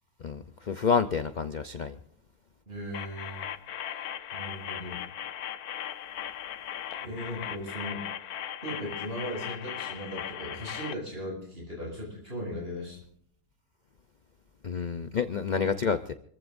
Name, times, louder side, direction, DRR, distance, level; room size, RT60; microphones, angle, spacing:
voice 1, 0.2-2.0 14.6-16.1, left 6 dB, 50° left, 10 dB, 0.5 m, -28 dB
voice 2, 2.7-3.4 4.3-5.0 7.0-8.0 8.6-13.0, equal, 35° right, -3 dB, 8.1 m, -37 dB
sound 1, 2.9-10.9, left 10 dB, 75° left, 1.3 m, -38 dB
27.5 x 15.0 x 2.6 m, 0.65 s
omnidirectional pair, 1.7 m